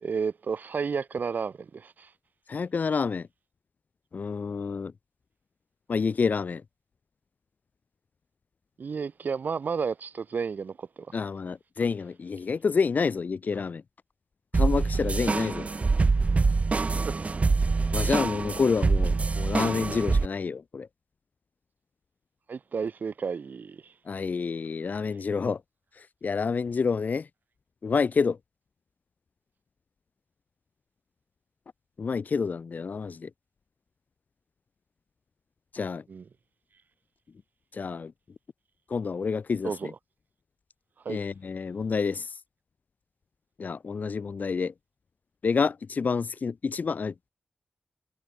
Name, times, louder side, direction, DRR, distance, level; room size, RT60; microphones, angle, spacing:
voice 1, 0.0-2.1 8.8-11.1 17.1-17.2 17.9-18.0 22.5-23.9 36.1-36.2 39.6-39.9 41.0-41.2, right 5 dB, 70° right, 1.1 m, -32 dB
voice 2, 2.5-3.3 4.1-4.9 5.9-6.6 11.1-13.8 14.5-15.7 17.9-20.9 24.1-25.6 25.9-27.3 27.8-28.4 32.0-33.3 35.7-36.0 37.7-38.1 38.9-39.9 41.1-42.4 43.6-44.7 45.4-47.3, left 5 dB, 60° left, 1.0 m, -28 dB
sound 1, 14.5-20.3, right 4 dB, 45° right, 1.1 m, -25 dB
cardioid pair, 75°, 3 cm